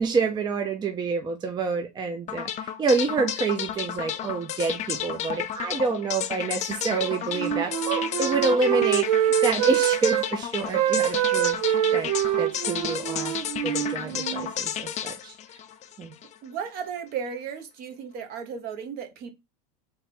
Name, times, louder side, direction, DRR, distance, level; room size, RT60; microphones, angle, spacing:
voice 1, 0.0-12.1 12.4-13.3 13.6-15.3 16.0-16.1, right 4 dB, 20° right, 0.6 m, -28 dB
sound 1, 2.3-16.4, left 10 dB, 35° left, 0.6 m, -32 dB
Wind instrument woodwind instrument, 6.9-10.3 10.6-14.5, right 12 dB, 75° right, 0.6 m, -25 dB
voice 2, 16.4-19.3, right 7 dB, 50° right, 1.1 m, -35 dB
3.6 x 3.4 x 4.3 m
supercardioid pair, 120°, 20 cm